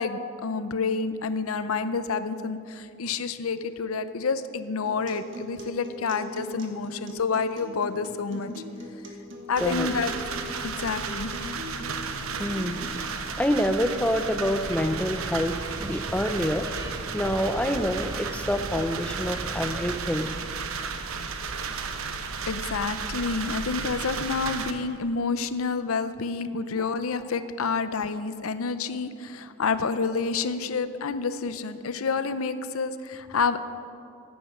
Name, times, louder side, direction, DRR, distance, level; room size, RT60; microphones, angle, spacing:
voice 1, 0.0-8.5 9.5-10.1 10.6-11.3 22.5-33.6, left 4 dB, 85° left, 12 dB, 0.6 m, -29 dB
Acoustic guitar, 4.9-12.8, left 1 dB, 55° right, 1.7 m, -41 dB
sound 1, 9.6-24.7, right 5 dB, 80° right, 0.9 m, -34 dB
voice 2, 12.4-15.6 15.9-20.3, equal, 5° left, 8 dB, 0.4 m, -27 dB
sound 2, 14.7-20.0, right 1 dB, 15° right, 1.0 m, -39 dB
15.5 x 9.4 x 6.0 m, 2.4 s
head